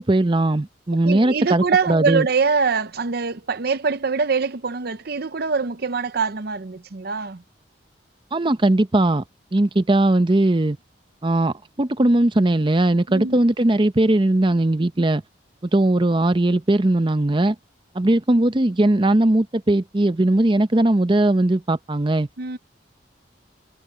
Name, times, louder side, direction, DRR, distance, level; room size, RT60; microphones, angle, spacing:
voice 1, 0.0-2.3 8.3-9.2 9.5-10.8 11.2-15.2 15.7-17.6 17.9-22.3, right 1 dB, 25° right, 0.7 m, -19 dB
voice 2, 1.0-7.4 13.1-13.4 22.4-22.6, right 5 dB, 55° right, 0.7 m, -23 dB
head